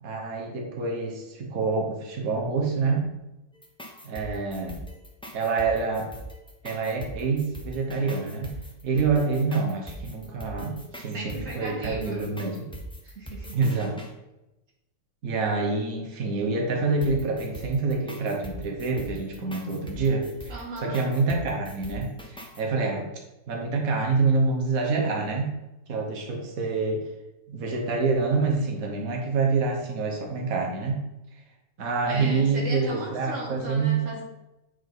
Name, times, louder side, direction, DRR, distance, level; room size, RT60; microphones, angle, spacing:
voice 1, 0.0-3.0 4.0-4.8 5.3-6.1 6.6-8.5 8.8-12.7 13.5-14.0 15.2-23.1 23.5-25.5 25.9-27.1 27.5-31.0 31.8-34.0, right 4 dB, 80° right, 1 dB, 1.5 m, -26 dB
sound 1, 3.5-14.1 17.0-22.6, equal, 5° left, 0.4 m, -41 dB
voice 2, 10.2-12.3 13.0-13.6 20.5-21.1 32.1-34.2, right 2 dB, 65° right, -2 dB, 1.9 m, -38 dB
8.4 x 3.6 x 3.8 m, 0.96 s
omnidirectional pair, 1.5 m